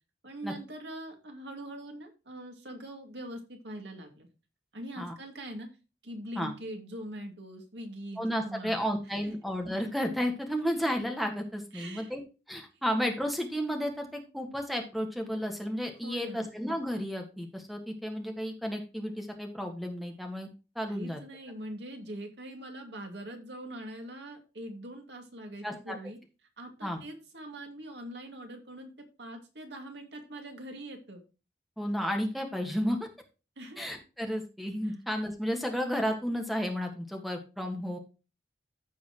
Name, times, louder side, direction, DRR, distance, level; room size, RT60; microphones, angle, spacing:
voice 1, 0.2-4.3 4.7-5.7 6.0-8.8 9.2-9.3 11.7-12.1 12.7-12.8 16.0-16.5 20.9-26.2 26.6-28.9 29.2-31.2 33.6-33.9 34.8-35.0, right 1 dB, 80° right, 3 dB, 2.3 m, -43 dB
voice 2, 8.2-12.2 12.5-20.5 20.8-21.2 25.6-26.0 26.8-27.0 31.8-33.1 33.8-38.0, equal, ahead, 3 dB, 1.6 m, -32 dB
14.5 x 5.5 x 3.0 m, 0.31 s
head